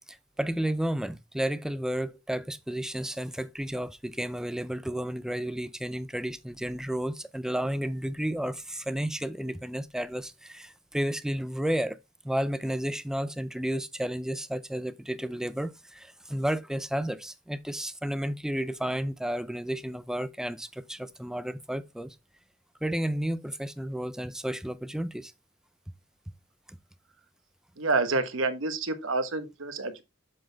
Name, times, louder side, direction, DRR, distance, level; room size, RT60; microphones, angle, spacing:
voice 1, 0.1-12.0 12.2-22.2 22.8-25.3 26.7-26.8, right 1 dB, 5° right, 0.3 m, -32 dB
voice 2, 27.8-30.0, right 3 dB, 65° right, 1.1 m, -28 dB
7.6 x 4.1 x 3.8 m
head